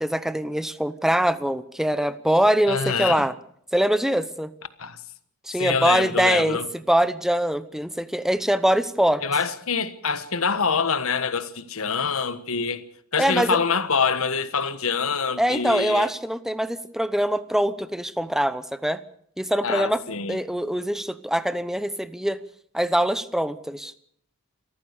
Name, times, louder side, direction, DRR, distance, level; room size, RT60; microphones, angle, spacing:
voice 1, 0.0-3.3 3.7-4.5 5.5-9.2 13.2-13.6 15.4-19.0 19.4-20.0 20.3-22.4 22.7-23.9, right 1 dB, ahead, 0.9 m, -23 dB
voice 2, 2.7-3.2 4.8-5.0 5.6-6.7 9.2-12.8 13.1-16.1 19.6-20.4, left 5 dB, 70° left, 1.4 m, -25 dB
28.0 x 14.5 x 6.7 m
head